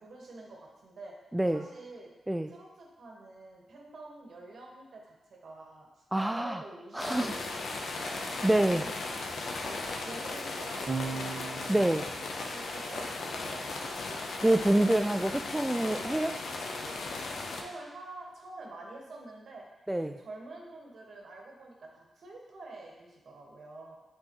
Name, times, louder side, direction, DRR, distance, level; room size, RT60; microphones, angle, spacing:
voice 1, 0.0-1.1 1.5-2.1 2.5-9.0 9.5-11.6 12.4-14.0 14.4-15.3 17.3-19.6 20.0-23.9, right 2 dB, 70° right, -1 dB, 1.6 m, -48 dB
voice 2, 1.3-1.6 2.3-2.5 6.1-6.6 6.9-7.3 8.4-8.8 11.7-12.1 14.4-16.4 19.9-20.2, right 1 dB, 15° right, 7 dB, 0.3 m, -26 dB
sound 1, 7.0-17.6, left 3 dB, 75° left, 0.8 m, -37 dB
Electric guitar / Bass guitar, 10.9-17.3, right 4 dB, 40° right, 1.4 m, -43 dB
8.4 x 4.6 x 3.1 m, 1.1 s
supercardioid pair, 50°, 0 cm